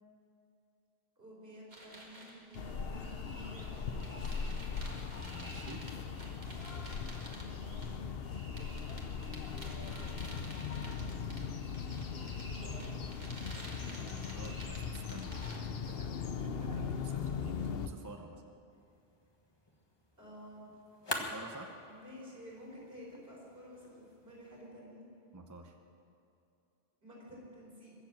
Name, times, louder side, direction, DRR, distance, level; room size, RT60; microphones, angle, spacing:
voice 1, 1.2-4.3 7.2-8.1 9.5-10.7 12.0-13.0 20.2-20.7 21.9-25.0 27.0-27.9, equal, 65° right, -5 dB, 4.9 m, -52 dB
sound 1, 1.7-15.6, right 1 dB, 45° right, 2.0 m, -52 dB
sound 2, 2.5-17.9, left 6 dB, 70° left, 0.9 m, -39 dB
voice 2, 5.1-5.9 12.2-12.3 14.0-18.5 21.1-21.8 25.3-25.8, right 2 dB, 20° right, 4 dB, 0.8 m, -50 dB
sound 3, 18.7-24.6, left 1 dB, 25° left, 1.3 m, -46 dB
22.5 x 7.5 x 7.4 m, 2.6 s
omnidirectional pair, 1.1 m